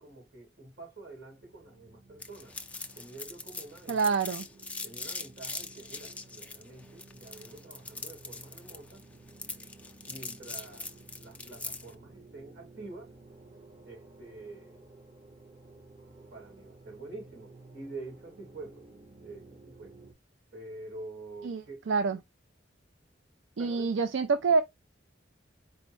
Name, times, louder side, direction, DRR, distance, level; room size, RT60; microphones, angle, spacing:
voice 1, 0.0-2.6 2.9-4.2 4.8-9.0 10.1-10.9 11.2-13.1 13.9-14.9 16.3-18.9 19.2-19.9 20.5-21.8 23.6-23.9, right 2 dB, 60° right, 3.0 m, -47 dB
sound 1, 1.4-20.1, right 3 dB, 30° right, 1.0 m, -55 dB
sound 2, 2.2-11.9, left 3 dB, 5° left, 0.4 m, -41 dB
voice 2, 3.9-4.4 21.4-22.2 23.6-24.6, right 4 dB, 80° right, 0.4 m, -27 dB
4.4 x 2.1 x 4.5 m
head